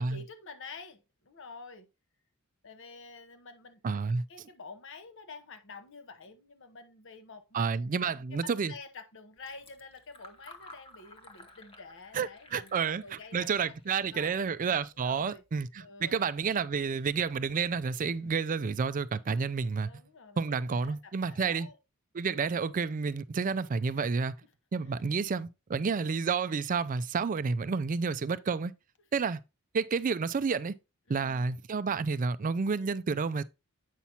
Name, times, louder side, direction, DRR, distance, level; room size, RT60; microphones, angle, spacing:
voice 1, 0.0-1.9 2.6-13.5 13.9-14.4 15.0-15.4 15.8-16.2 18.2-18.4 19.8-21.8 22.2-22.6 31.1-31.5, left 4 dB, 60° left, 0.9 m, -49 dB
voice 2, 3.8-4.2 7.5-8.7 12.1-19.9 20.4-21.7 22.1-24.3 24.7-28.7 29.1-29.4 29.7-30.7 31.1-33.4, right 5 dB, 40° right, 0.4 m, -30 dB
Fill (with liquid), 9.4-15.6, left 2 dB, 25° left, 1.0 m, -55 dB
8.3 x 5.6 x 2.9 m
head